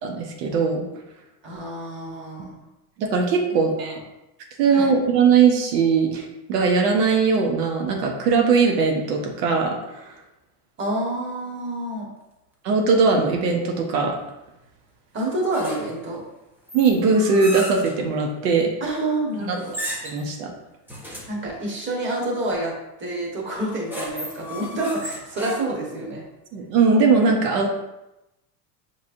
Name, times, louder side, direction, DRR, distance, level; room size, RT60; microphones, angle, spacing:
voice 1, 0.0-0.8 2.4-2.5 3.0-4.0 4.6-10.1 12.6-14.1 16.7-18.7 19.5-19.6 20.0-20.5 26.5-27.8, right 5 dB, 90° right, 2 dB, 0.9 m, -20 dB
voice 2, 1.4-2.6 3.5-3.9 4.7-4.9 10.8-12.1 15.1-16.2 18.8-19.7 21.2-26.3, right 1 dB, 25° right, -2 dB, 1.2 m, -28 dB
sound 1, 15.5-16.1 16.7-18.0 19.6-20.3 20.9-21.4 23.6-25.9, equal, 5° right, 0.5 m, -34 dB
5.6 x 3.2 x 2.5 m, 0.93 s
supercardioid pair, 130°, 47 cm